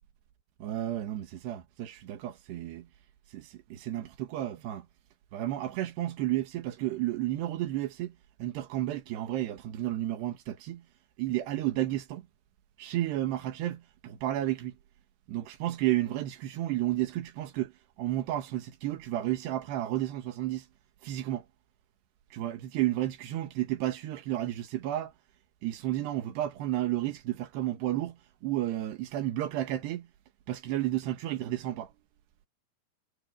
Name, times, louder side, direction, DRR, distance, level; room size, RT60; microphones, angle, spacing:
voice 1, 0.6-2.9 3.3-4.9 5.3-8.2 8.4-10.9 11.2-12.3 12.8-14.8 15.3-17.7 18.0-20.7 21.0-21.5 22.3-25.1 25.6-30.1 30.5-31.9, right 14 dB, 90° right, 3.6 m, -32 dB
omnidirectional pair, 4.7 m